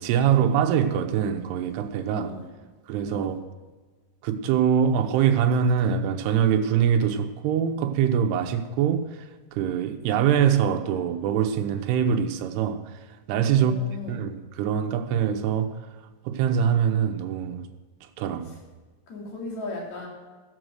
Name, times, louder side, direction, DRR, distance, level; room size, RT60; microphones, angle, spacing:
voice 1, 0.0-2.4 2.9-3.4 4.2-9.1 9.5-12.8 13.3-15.8 16.3-17.7 18.2-18.6, right 8 dB, 85° right, 2.9 m, -23 dB
voice 2, 2.1-2.5 3.1-3.4 13.5-14.2 19.1-20.1, left 3 dB, 45° left, 3.8 m, -36 dB
15.0 x 7.7 x 6.4 m
omnidirectional pair, 4.7 m